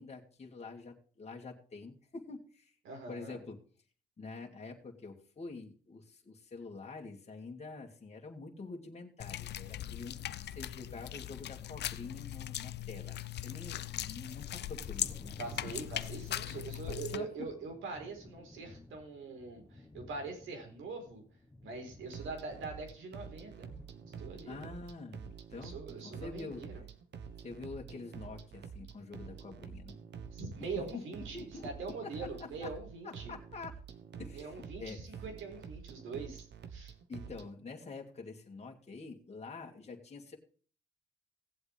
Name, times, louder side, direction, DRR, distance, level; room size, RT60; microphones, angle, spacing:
voice 1, 0.0-2.7 3.1-3.6 4.2-15.4 15.6-15.7 16.5-17.3 24.5-25.8 26.0-26.6 27.4-30.0 30.8-30.9 31.1-31.7 32.0-32.7 33.0-33.8 34.2-34.5 34.8-35.0 37.1-40.4, left 4 dB, 35° left, 0 dB, 2.4 m, -46 dB
voice 2, 2.8-3.4 15.4-21.2 21.6-23.7 24.2-24.8 25.6-26.7 30.3-33.4 34.3-36.9, right 4 dB, 80° right, 4 dB, 4.5 m, -43 dB
sound 1, 9.2-17.2, left 12 dB, 60° left, 0.6 m, -40 dB
Thunder, 14.8-24.5, left 2 dB, 10° left, 1.4 m, -56 dB
sound 2, 22.0-37.5, right 6 dB, 60° right, 1.4 m, -48 dB
17.5 x 8.0 x 3.5 m, 0.42 s
cardioid pair, 90°, 20 cm